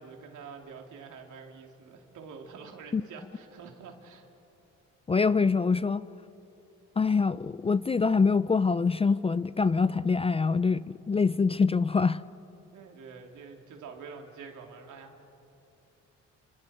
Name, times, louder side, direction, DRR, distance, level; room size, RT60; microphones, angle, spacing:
voice 1, 0.0-4.3 12.7-15.3, right 5 dB, 75° right, 2 dB, 2.9 m, -46 dB
voice 2, 5.1-6.0 7.0-12.2, left 4 dB, 20° left, 16 dB, 0.4 m, -25 dB
29.5 x 26.0 x 4.4 m, 2.9 s
cardioid pair, 90°, 30 cm